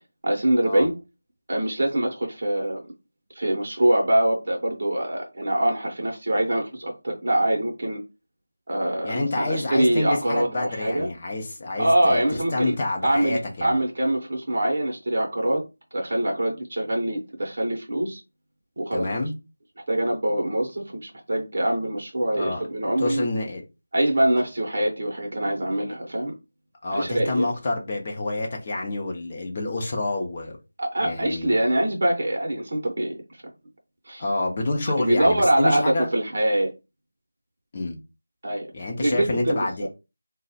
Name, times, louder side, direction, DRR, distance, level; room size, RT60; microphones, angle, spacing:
voice 1, 0.2-0.9 1.5-2.8 3.3-8.0 8.7-11.1 11.8-12.7 13.0-15.6 15.9-18.2 18.8-19.1 19.9-23.3 23.9-26.3 26.9-27.5 30.8-33.2 34.1-34.2 35.0-36.7 38.4-38.7 39.0-39.9, right 1 dB, 40° right, 0.7 m, -24 dB
voice 2, 9.0-12.2 12.5-13.8 18.9-19.3 22.3-22.6 23.0-23.6 26.8-30.6 31.0-31.6 34.2-36.1 37.7-38.0 38.7-39.9, left 2 dB, 20° left, 0.6 m, -28 dB
3.1 x 2.0 x 4.0 m
figure-of-eight pair, 180°, 0 cm